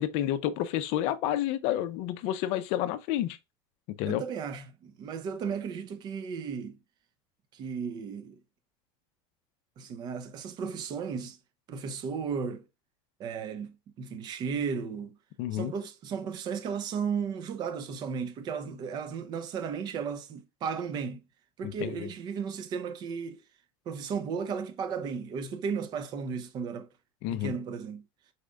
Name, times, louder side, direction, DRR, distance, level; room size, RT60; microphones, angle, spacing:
voice 1, 0.0-3.4 4.0-4.2 15.4-15.7 21.6-22.1 27.2-27.6, left 12 dB, 55° left, 0.5 m, -30 dB
voice 2, 4.1-6.8 7.5-8.3 9.8-11.4 11.7-12.7 13.2-15.2 15.5-21.2 21.6-23.4 23.9-26.9 27.3-28.0, right 6 dB, 35° right, 0.6 m, -35 dB
4.9 x 4.2 x 2.2 m
supercardioid pair, 155°, 13 cm